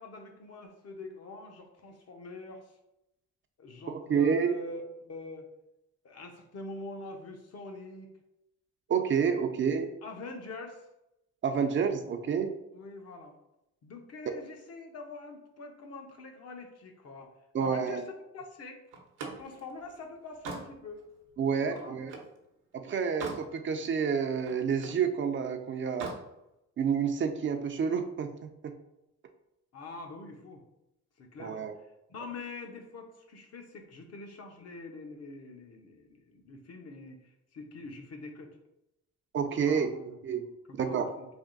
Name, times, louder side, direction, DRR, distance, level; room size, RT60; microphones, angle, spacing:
voice 1, 0.0-2.8 3.6-5.5 6.0-8.1 9.2-9.5 10.0-10.9 12.7-13.3 13.8-17.3 17.6-18.8 19.4-21.0 21.5-21.9 29.7-30.6 31.2-31.6 32.1-38.6 39.7-41.3, left 3 dB, 55° left, 3 dB, 0.8 m, -45 dB
voice 2, 3.9-4.5 8.9-9.9 11.4-12.5 14.3-14.4 17.5-18.0 21.4-22.1 22.7-26.1 26.8-28.7 31.4-31.7 39.3-39.9 40.2-40.4 40.7-41.1, right 6 dB, 40° right, 7 dB, 0.4 m, -29 dB
Slam, 18.9-22.4 22.8-23.5 23.9-25.0 25.8-26.3, right 4 dB, 85° right, 0.8 m, -43 dB
3.5 x 2.5 x 3.8 m, 0.88 s
cardioid pair, 90°, 30 cm